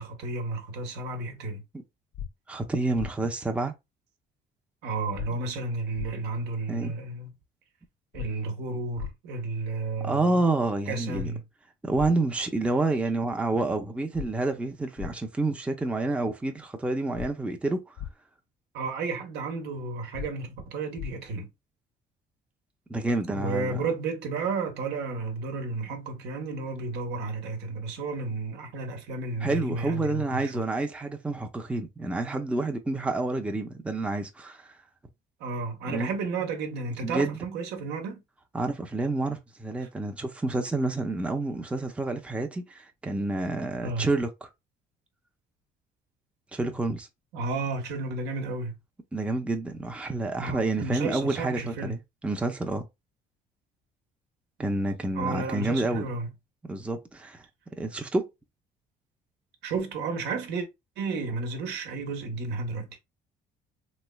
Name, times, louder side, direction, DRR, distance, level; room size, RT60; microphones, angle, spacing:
voice 1, 0.0-1.6 4.8-7.3 8.1-10.5 10.9-11.4 18.7-21.5 23.3-30.6 35.4-38.2 39.8-39.9 43.8-44.1 47.3-48.7 50.4-52.0 55.1-56.3 59.6-60.7 61.0-63.0, right 3 dB, 80° right, 0.9 m, -32 dB
sound 1, 2.1-2.3 3.0-3.1 5.1-5.3 6.0-6.1 8.1-8.3 9.0-9.1 11.1-11.3 12.0-12.1 14.1-14.3 15.0-15.1 17.1-17.3 18.0-18.1 20.1-20.3 21.0-21.1, left 9 dB, 55° left, 0.4 m, -36 dB
voice 2, 2.5-3.7 6.7-6.9 10.0-11.3 11.8-17.9 22.9-23.8 29.4-34.7 35.9-36.1 37.0-37.4 38.5-44.3 46.5-47.1 49.1-52.0 52.2-52.9 54.6-56.1 56.7-57.4 57.8-58.3, right 2 dB, 5° right, 0.5 m, -28 dB
3.2 x 3.1 x 2.2 m
cardioid pair, 110°, 17 cm